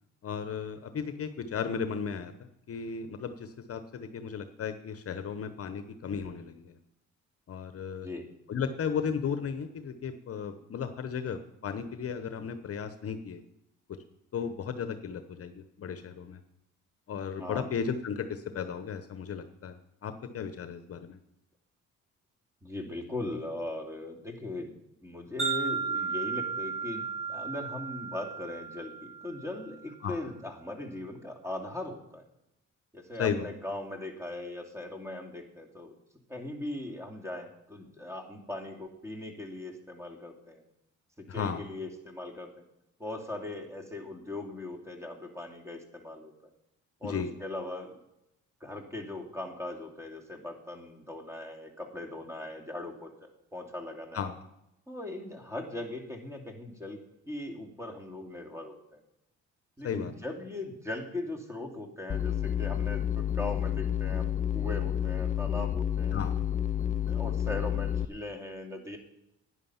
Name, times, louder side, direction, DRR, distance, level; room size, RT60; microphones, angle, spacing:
voice 1, 0.2-2.3 2.7-6.8 7.5-8.1 8.5-13.4 13.9-14.0 14.3-16.4 17.1-19.8 20.0-21.2 30.0-30.2 33.2-33.5 41.3-41.6 47.0-47.3 54.1-54.3 59.8-60.1 66.1-66.4, left 6 dB, 50° left, 10 dB, 0.9 m, -35 dB
voice 2, 17.4-17.7 22.6-24.7 25.0-28.9 29.2-32.2 32.9-35.9 36.3-40.6 41.2-42.5 43.0-46.3 47.0-47.9 48.6-54.3 54.9-57.0 57.3-59.0 59.8-66.2 66.8-69.0, left 2 dB, 10° right, 2 dB, 2.7 m, -39 dB
Wind chime, 25.4-29.7, right 5 dB, 45° right, 6.0 m, -34 dB
sound 1, 62.1-68.0, left 9 dB, 25° left, 0.4 m, -30 dB
11.0 x 9.8 x 5.8 m, 0.84 s
cardioid pair, 90°, 30 cm